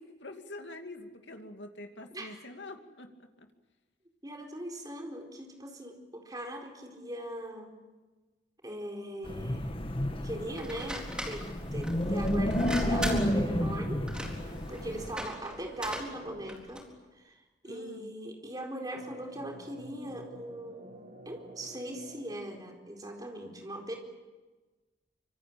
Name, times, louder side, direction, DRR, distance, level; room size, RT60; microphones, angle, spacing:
voice 1, 0.0-3.5 15.0-15.1 17.6-18.1, left 2 dB, 75° left, 5 dB, 2.6 m, -46 dB
voice 2, 2.1-2.4 4.2-7.7 8.6-9.7 10.2-14.1 14.7-16.8 17.2-17.4 17.6-24.0, right 1 dB, 20° right, 2 dB, 4.3 m, -40 dB
Wind, 9.2-15.1, equal, 30° left, 1.8 m, -31 dB
sound 1, 10.6-16.9, equal, 5° right, 4.1 m, -41 dB
sound 2, 13.6-16.6 19.0-22.4, right 1 dB, 45° right, 1.9 m, -50 dB
25.5 x 25.0 x 8.7 m, 1.2 s
head